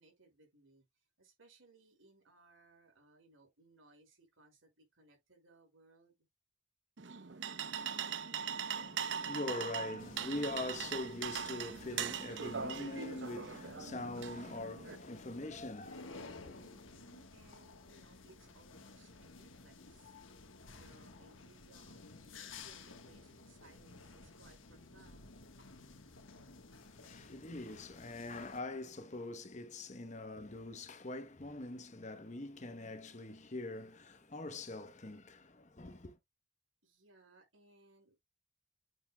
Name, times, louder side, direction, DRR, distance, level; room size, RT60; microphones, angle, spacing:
voice 1, 0.0-6.2 16.6-20.1 20.7-25.3 36.8-38.2, right 2 dB, 90° right, 5.4 m, -65 dB
sound 1, 7.0-15.0, right 7 dB, 65° right, 0.8 m, -41 dB
voice 2, 8.7-16.6 26.8-36.2, left 2 dB, 35° left, 1.0 m, -43 dB
sound 2, 10.0-28.6, left 3 dB, 80° left, 1.4 m, -54 dB
8.3 x 6.7 x 2.3 m
head